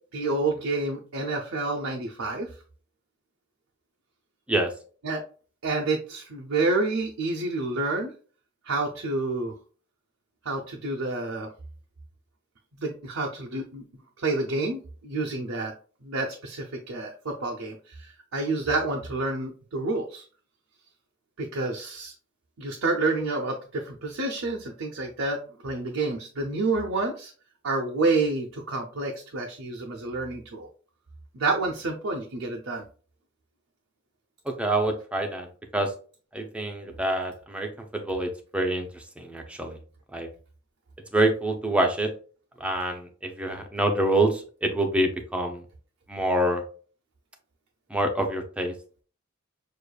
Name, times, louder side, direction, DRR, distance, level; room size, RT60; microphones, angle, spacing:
voice 1, 0.1-2.5 5.0-5.2 5.6-8.1 8.6-9.5 10.4-11.5 12.8-13.8 14.2-15.7 16.0-20.3 21.4-22.1 22.6-27.3 27.6-30.7 31.3-32.8, right 3 dB, 75° right, 1 dB, 0.7 m, -29 dB
voice 2, 34.5-35.5 35.7-35.9 36.3-39.8 40.1-40.3 41.1-42.1 42.6-45.6 46.1-46.6 47.9-48.7, right 1 dB, 5° right, 3 dB, 0.6 m, -26 dB
6.4 x 2.5 x 2.3 m, 0.39 s
head